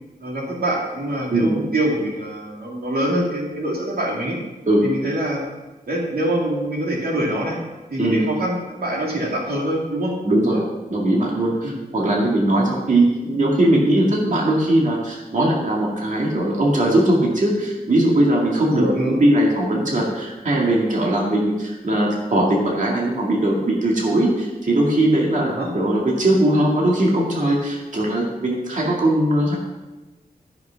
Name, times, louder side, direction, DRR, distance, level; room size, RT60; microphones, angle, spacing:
voice 1, 0.2-4.4 4.8-5.4 5.9-7.6 7.9-10.1 10.5-10.6 11.6-11.7 18.7-19.2 25.5-25.7, right 1 dB, 90° right, -2 dB, 2.6 m, -24 dB
voice 2, 10.2-10.5 10.9-29.6, right 1 dB, 55° right, -3 dB, 2.1 m, -19 dB
13.0 x 5.8 x 5.8 m, 1.1 s
wide cardioid pair, 105°, 16 cm